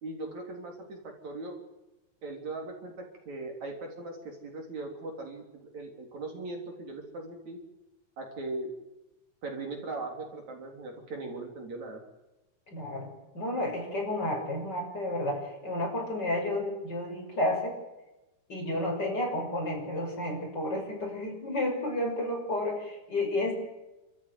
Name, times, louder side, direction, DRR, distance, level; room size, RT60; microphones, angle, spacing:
voice 1, 0.0-1.6 2.2-7.6 8.2-8.7 9.4-12.0, right 2 dB, 60° right, 2 dB, 4.9 m, -39 dB
voice 2, 12.7-17.8 18.5-23.5, left 1 dB, 30° left, 0 dB, 6.9 m, -31 dB
29.0 x 14.0 x 9.6 m, 1.0 s
omnidirectional pair, 3.7 m